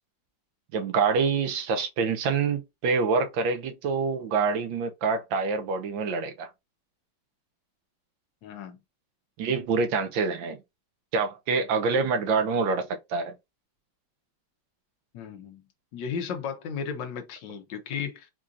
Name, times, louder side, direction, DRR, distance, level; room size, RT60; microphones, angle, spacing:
voice 1, 0.7-6.5 9.4-10.6 11.1-13.3, right 5 dB, 80° right, 1.4 m, -26 dB
voice 2, 8.4-8.8 15.1-15.6 15.9-18.3, left 6 dB, 75° left, 1.3 m, -34 dB
4.5 x 2.5 x 2.5 m
omnidirectional pair, 2.1 m